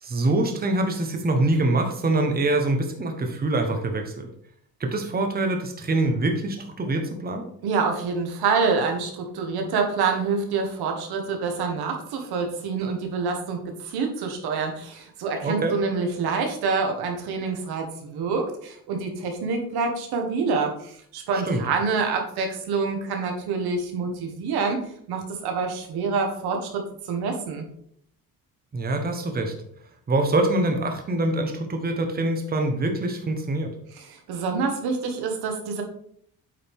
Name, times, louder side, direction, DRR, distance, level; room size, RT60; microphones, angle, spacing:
voice 1, 0.0-4.3 4.8-7.5 15.4-15.7 21.4-21.6 28.7-29.5 30.1-33.7, right 2 dB, 25° right, 4 dB, 1.1 m, -24 dB
voice 2, 7.6-24.8 25.1-27.7 33.9-35.8, right 4 dB, 80° right, 3 dB, 1.7 m, -27 dB
8.5 x 5.1 x 3.7 m, 0.66 s
cardioid pair, 120°, 38 cm